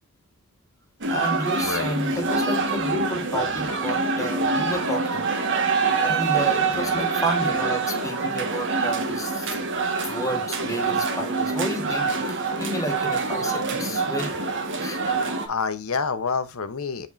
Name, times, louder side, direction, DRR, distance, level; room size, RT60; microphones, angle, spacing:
sound 1, 1.0-15.5, right 4 dB, 55° right, 1.6 m, -25 dB
voice 1, 1.1-5.3 6.0-9.5 10.0-14.3 14.8-15.0, equal, 15° left, 1.5 m, -31 dB
voice 2, 1.6-2.0 6.7-7.1 15.5-17.1, left 5 dB, 70° left, 0.9 m, -28 dB
7.8 x 5.4 x 2.6 m
head